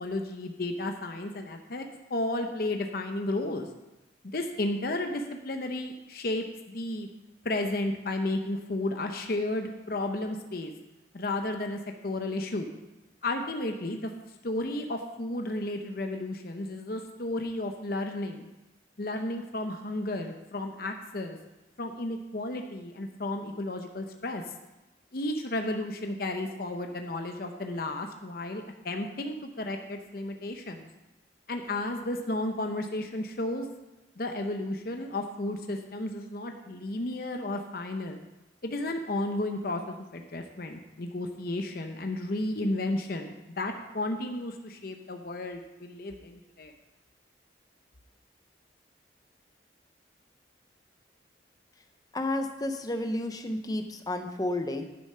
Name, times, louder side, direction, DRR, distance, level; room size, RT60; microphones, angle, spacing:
voice 1, 0.0-3.7 4.3-7.1 7.4-10.7 11.1-12.7 13.2-14.1 14.4-18.5 19.0-21.4 21.8-24.4 25.1-30.9 31.5-33.7 34.2-38.2 38.6-46.7, left 2 dB, 50° left, 4 dB, 0.7 m, -33 dB
voice 2, 52.1-54.8, left 1 dB, 20° left, 6 dB, 0.7 m, -31 dB
10.5 x 7.0 x 5.6 m, 1.0 s
head